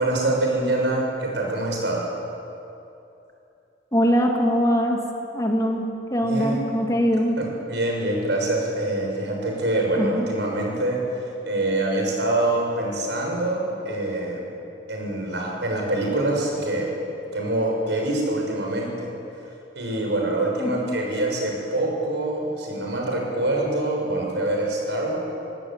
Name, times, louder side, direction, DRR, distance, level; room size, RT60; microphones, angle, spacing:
voice 1, 0.0-2.1 6.2-6.6 7.4-14.4 14.9-16.9 17.3-19.1 19.7-25.2, right 1 dB, 80° right, 0 dB, 6.7 m, -25 dB
voice 2, 3.9-5.0 5.3-7.4 10.0-10.3 20.6-21.0, equal, 20° left, 1 dB, 2.3 m, -22 dB
23.0 x 18.0 x 8.9 m, 2.8 s
head